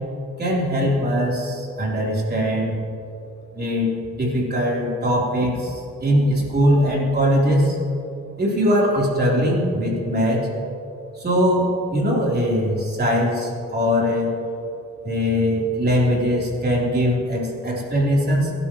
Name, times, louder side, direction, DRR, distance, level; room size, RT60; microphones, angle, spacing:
voice 1, 0.4-2.8 3.5-7.8 8.4-10.5 11.2-14.3 15.0-18.5, equal, 35° right, -4 dB, 3.8 m, -21 dB
23.5 x 12.0 x 3.1 m, 2.6 s
cardioid pair, 90°, 30 cm